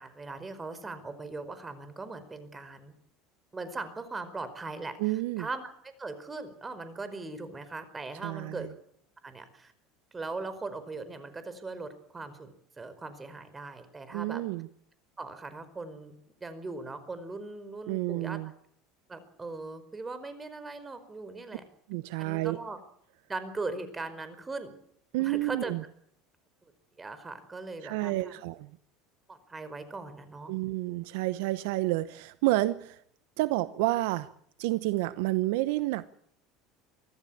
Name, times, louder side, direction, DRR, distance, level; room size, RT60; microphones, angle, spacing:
voice 1, 0.0-2.9 3.5-8.7 9.2-9.7 10.1-14.4 15.2-16.1 16.4-18.4 19.1-21.6 22.2-22.8 23.3-24.7 25.2-25.7 27.0-28.4 29.3-30.5, right 3 dB, 20° right, 12 dB, 4.9 m, -39 dB
voice 2, 5.0-5.5 8.2-8.7 14.1-14.7 17.9-18.5 21.9-22.6 25.1-25.8 27.8-28.7 30.5-33.0 33.4-34.3 34.6-36.1, right 18 dB, 75° right, 15 dB, 0.9 m, -29 dB
24.0 x 15.0 x 8.7 m, 0.69 s
hypercardioid pair, 85°, 0 cm